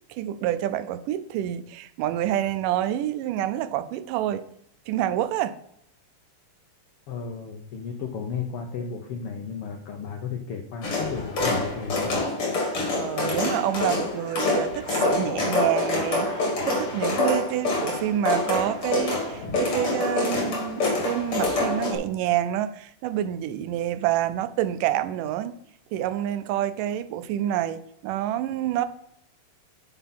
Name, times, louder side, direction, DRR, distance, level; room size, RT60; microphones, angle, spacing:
voice 1, 0.1-4.5 4.9-5.6 12.9-25.6 25.9-28.9, right 12 dB, 85° right, 2.2 m, -27 dB
voice 2, 7.1-12.2, left 6 dB, 85° left, 1.2 m, -34 dB
sound 1, 10.8-22.0, left 2 dB, 45° left, 3.0 m, -26 dB
9.2 x 5.7 x 4.1 m
omnidirectional pair, 3.7 m